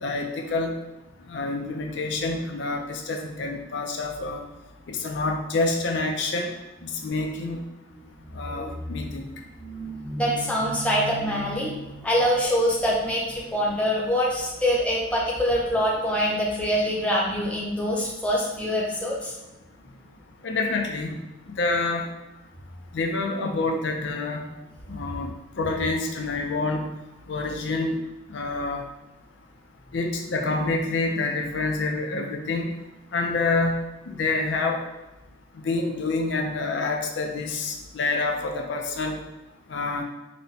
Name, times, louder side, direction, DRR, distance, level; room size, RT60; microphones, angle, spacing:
voice 1, 0.0-0.7 1.3-4.4 4.9-6.5 7.0-7.6 8.3-9.3 20.4-21.1 21.6-22.0 22.9-24.5 24.9-25.3 25.6-26.9 27.3-28.0 28.3-28.8 29.9-32.7 33.1-33.7 34.1-34.8 35.6-39.2 39.7-40.0, left 3 dB, 65° left, 2 dB, 0.4 m, -27 dB
voice 2, 9.6-19.3, equal, 5° left, -4 dB, 0.6 m, -25 dB
4.0 x 2.1 x 4.0 m, 1.0 s
head